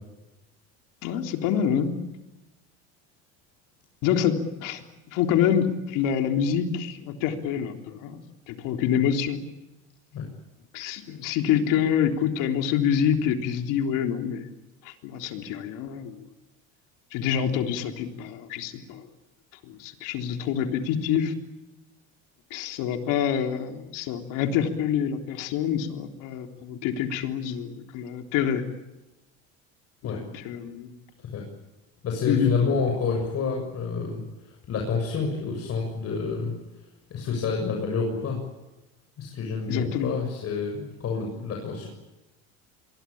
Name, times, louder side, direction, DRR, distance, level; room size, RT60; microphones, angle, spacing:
voice 1, 1.0-2.0 4.0-8.2 8.5-9.4 10.7-14.5 14.8-16.3 17.1-19.1 19.6-21.3 22.5-28.6 30.0-30.9 32.3-32.5 39.7-40.2, left 8 dB, 70° left, 5 dB, 3.6 m, -26 dB
voice 2, 32.0-34.2 34.7-36.5 37.1-38.4 39.2-41.9, left 5 dB, 45° left, 1 dB, 7.2 m, -28 dB
26.5 x 23.0 x 8.7 m, 1.0 s
supercardioid pair, 100°, 33 cm